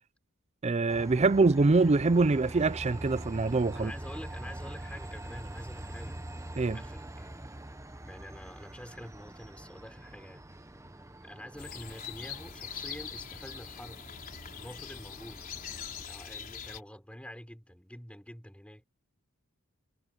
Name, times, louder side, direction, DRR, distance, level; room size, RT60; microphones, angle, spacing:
voice 1, 0.6-3.9 6.6-6.8, right 3 dB, 30° right, 0.5 m, -24 dB
Train, 0.9-16.0, right 1 dB, 15° right, 1.0 m, -44 dB
voice 2, 3.7-6.2 6.7-7.5 8.0-10.4 11.2-14.0 14.5-15.4 16.1-18.9, equal, 5° left, 4.6 m, -47 dB
sound 1, 11.6-16.8, left 7 dB, 40° left, 4.3 m, -42 dB
head